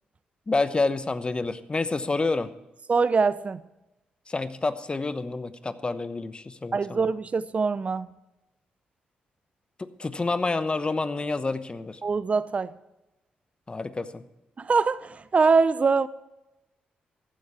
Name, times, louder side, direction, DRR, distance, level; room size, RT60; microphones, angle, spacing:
voice 1, 0.5-2.5 4.3-7.1 9.8-12.0 13.7-14.2, left 3 dB, 30° left, 1.0 m, -28 dB
voice 2, 2.9-3.6 6.7-8.1 12.0-12.7 14.6-16.1, right 4 dB, 40° right, 0.5 m, -23 dB
15.0 x 8.4 x 5.9 m
supercardioid pair, 60°, 3 cm